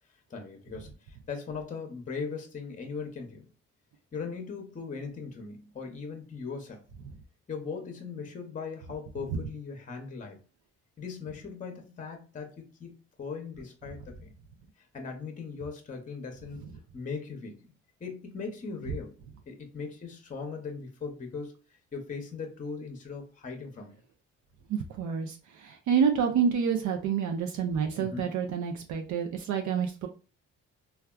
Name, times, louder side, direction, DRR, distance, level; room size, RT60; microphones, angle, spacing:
voice 1, 0.3-3.5 4.1-6.8 7.5-10.4 11.0-12.9 13.2-14.3 14.9-16.6 16.9-17.7 18.0-19.1 19.5-21.5 21.9-23.9 28.0-28.3, left 5 dB, 25° left, 4 dB, 0.7 m, -39 dB
voice 2, 24.7-30.1, right 7 dB, 75° right, 3 dB, 0.5 m, -28 dB
3.3 x 2.3 x 2.2 m, 0.35 s
cardioid pair, 90°, 30 cm